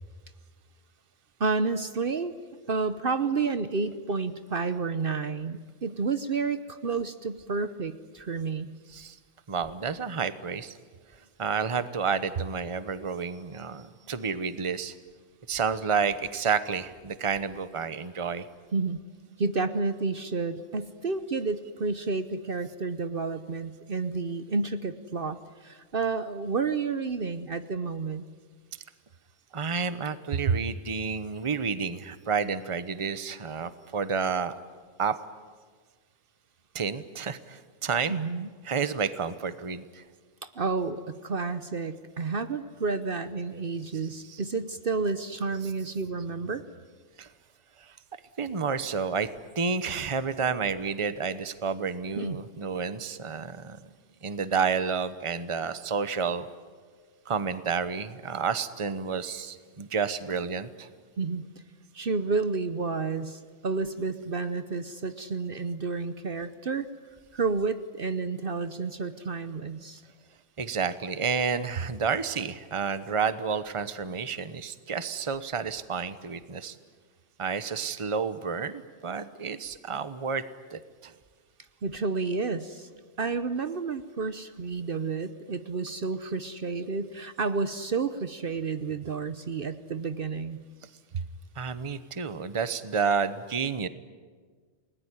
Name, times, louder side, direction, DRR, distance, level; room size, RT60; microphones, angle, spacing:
voice 1, 1.4-2.3 2.7-8.7 18.7-19.0 19.4-28.2 30.5-30.6 38.1-38.5 40.4-46.6 52.1-52.4 59.8-59.9 61.2-61.5 61.9-66.9 67.3-70.0 81.8-82.9 83.2-90.6 91.1-91.2, right 4 dB, 50° right, 11 dB, 1.1 m, -30 dB
voice 2, 9.5-10.8 11.4-14.9 15.5-18.5 29.5-34.5 35.0-35.2 36.7-38.1 38.6-40.0 44.0-44.5 45.5-45.7 47.2-47.3 47.8-48.0 48.4-49.3 49.5-53.8 54.2-56.5 57.3-60.9 70.6-76.8 77.4-80.4 80.7-81.1 86.2-86.3 91.6-93.9, right 6 dB, 30° right, 13 dB, 1.0 m, -30 dB
29.5 x 19.5 x 10.0 m, 1.5 s
omnidirectional pair, 1.2 m